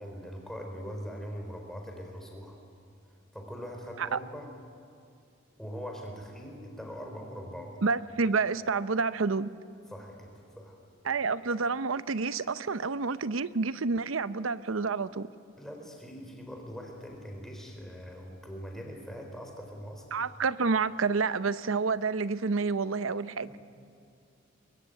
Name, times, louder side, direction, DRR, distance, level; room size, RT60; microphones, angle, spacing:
voice 1, 0.0-2.6 3.3-4.5 5.6-7.8 9.9-10.8 11.0-11.2 15.6-20.2 23.5-23.6, equal, ahead, 4.1 m, -42 dB
voice 2, 7.8-9.5 11.0-15.3 20.1-23.5, right 4 dB, 85° right, 0.7 m, -29 dB
24.0 x 22.0 x 9.1 m
head